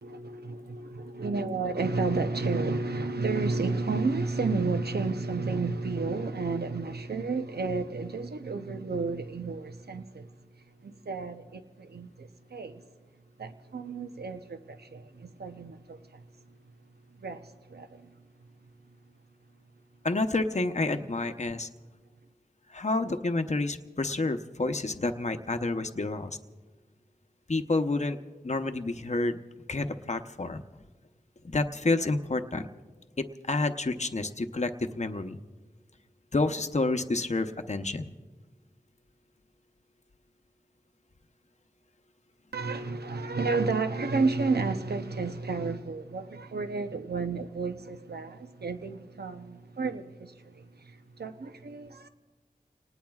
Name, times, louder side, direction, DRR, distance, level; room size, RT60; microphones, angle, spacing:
voice 1, 0.0-10.3 10.8-12.8 13.4-16.2 17.2-18.1 42.5-52.1, right 3 dB, 75° right, 0.8 m, -31 dB
voice 2, 20.0-21.7 22.7-26.4 27.5-28.2 28.4-29.4 29.7-30.6 31.4-32.7 33.2-35.4 36.3-38.1, left 2 dB, 45° left, 0.8 m, -29 dB
29.5 x 19.0 x 2.4 m
wide cardioid pair, 60°, 17 cm